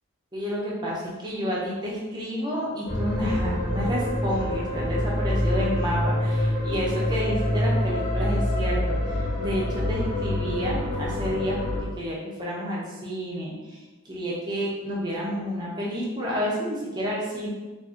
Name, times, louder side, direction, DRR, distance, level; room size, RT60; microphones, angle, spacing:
voice 1, 0.3-13.5 14.0-17.5, equal, 20° right, -5 dB, 0.7 m, -30 dB
sound 1, 2.9-11.8, left 1 dB, 20° left, 0.9 m, -26 dB
2.7 x 2.6 x 3.7 m, 1.2 s
head